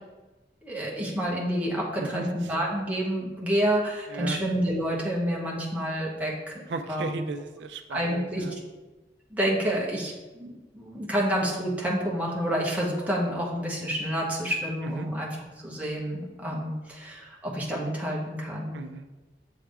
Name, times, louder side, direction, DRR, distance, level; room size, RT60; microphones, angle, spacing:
voice 1, 0.6-6.6 6.9-7.2 7.9-8.4 9.3-15.4 15.6-18.8, equal, 10° right, -4 dB, 1.1 m, -29 dB
voice 2, 6.7-8.6 14.8-15.1 18.7-19.1, right 3 dB, 90° right, 7 dB, 0.4 m, -36 dB
7.7 x 3.5 x 3.4 m, 1.2 s
head